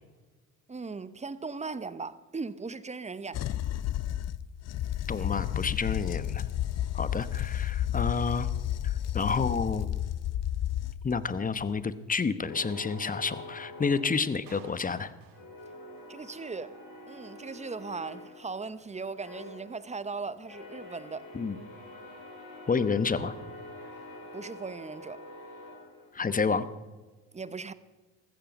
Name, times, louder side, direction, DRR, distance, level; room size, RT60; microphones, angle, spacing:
voice 1, 0.7-3.5 16.1-16.8 17.1-21.3 24.3-25.2 27.3-27.7, right 4 dB, 20° right, 0.8 m, -38 dB
sound 1, 3.3-11.3 11.6-11.8, left 11 dB, 45° left, 0.6 m, -31 dB
voice 2, 5.1-6.4 6.9-8.5 8.8-9.9 11.0-15.1 21.3-21.6 22.7-23.3 26.1-26.7, left 5 dB, 20° left, 1.0 m, -29 dB
sound 2, 12.5-14.9 15.3-26.5, left 1 dB, 65° left, 6.4 m, -47 dB
Clapping, 14.5-16.5, right 9 dB, 85° right, 1.6 m, -56 dB
14.5 x 14.0 x 5.2 m
hypercardioid pair, 65°, 37 cm